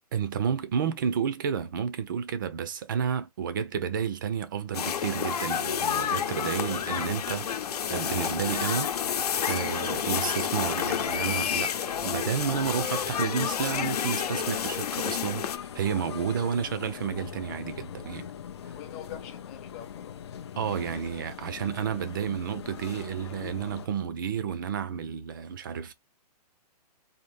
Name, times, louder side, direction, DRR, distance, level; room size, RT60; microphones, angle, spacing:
voice 1, 0.1-7.5 7.9-9.0 9.5-11.7 12.0-15.5 15.7-18.3 20.6-25.9, right 7 dB, 30° right, 0.5 m, -31 dB
sound 1, 4.7-15.6, left 8 dB, 65° left, 0.8 m, -30 dB
sound 2, 5.5-23.9, left 8 dB, 40° left, 0.4 m, -43 dB
voice 2, 18.7-20.4 24.0-24.1, left 10 dB, 20° left, 0.8 m, -45 dB
4.2 x 2.8 x 3.3 m
hypercardioid pair, 175°, 21 cm